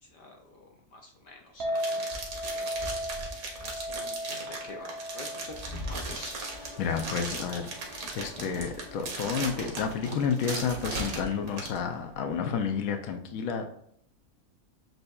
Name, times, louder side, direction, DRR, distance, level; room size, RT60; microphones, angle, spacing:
voice 1, 0.0-3.0 3.6-6.4, left 2 dB, 55° left, 1 dB, 0.6 m, -48 dB
Chink clink, 1.6-7.9, equal, 50° right, 1.1 m, -37 dB
sound 1, 1.7-11.8, right 3 dB, 80° right, 1.4 m, -38 dB
Train, 2.1-12.5, left 1 dB, 35° left, 1.0 m, -43 dB
voice 2, 6.8-13.7, left 6 dB, 80° left, 6 dB, 1.0 m, -31 dB
7.7 x 2.8 x 2.3 m, 0.68 s
omnidirectional pair, 1.5 m